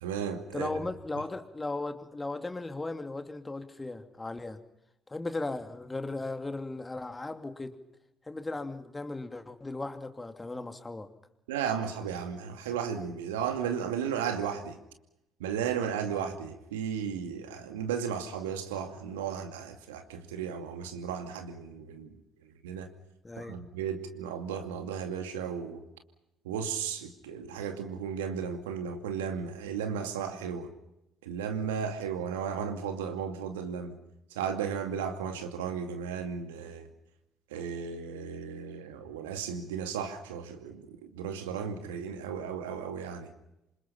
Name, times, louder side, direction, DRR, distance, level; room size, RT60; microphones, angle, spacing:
voice 1, 0.0-0.7 11.5-14.8 15.4-22.1 22.6-22.9 23.4-25.8 26.4-30.7 31.2-34.0 34.3-36.9 37.5-43.3, right 7 dB, 75° right, 6 dB, 2.3 m, -34 dB
voice 2, 0.5-4.6 5.1-7.8 8.3-11.1 23.2-23.6, left 2 dB, 20° left, 8 dB, 2.6 m, -37 dB
27.5 x 26.5 x 5.7 m, 0.87 s
figure-of-eight pair, 50°, 0 cm